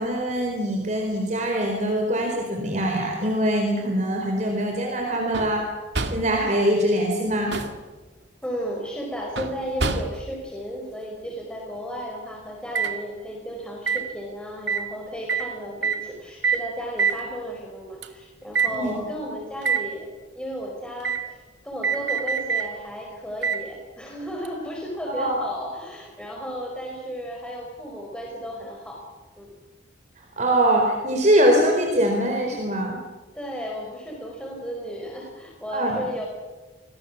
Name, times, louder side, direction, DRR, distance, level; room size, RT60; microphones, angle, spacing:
voice 1, 0.0-5.7 6.1-7.6 18.7-18.9 25.1-25.3 30.4-33.0 35.7-36.0, right 1 dB, 40° right, 2 dB, 4.5 m, -23 dB
sound 1, 5.3-5.7 6.0-6.4 7.3-7.8 9.4-10.3 12.8-13.0 13.9-14.1 14.7-14.9 15.3-15.5 15.8-16.0 16.4-16.7 17.0-17.2 18.0-18.1 18.6-18.8 19.6-19.9 21.0-21.3 21.8-22.7 23.4-23.6 24.5-24.6, right 5 dB, 75° right, 2.2 m, -25 dB
voice 2, 8.4-20.1 20.3-29.0 29.4-29.5 33.3-36.3, equal, 5° left, -1 dB, 4.9 m, -34 dB
29.5 x 22.0 x 7.4 m, 1.2 s
head